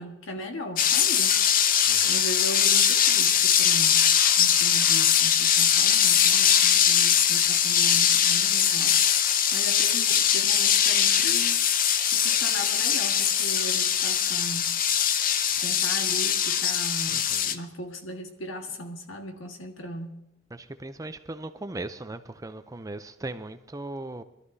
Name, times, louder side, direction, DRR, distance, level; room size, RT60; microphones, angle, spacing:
voice 1, 0.0-1.4 2.1-9.2 9.5-11.7 12.1-14.7 15.5-20.2, equal, 80° left, 1.5 m, -38 dB
sound 1, 0.8-17.6, left 8 dB, 45° left, 0.6 m, -22 dB
voice 2, 17.1-17.5 20.5-24.2, right 2 dB, 15° right, 0.5 m, -38 dB
23.5 x 13.0 x 2.7 m
head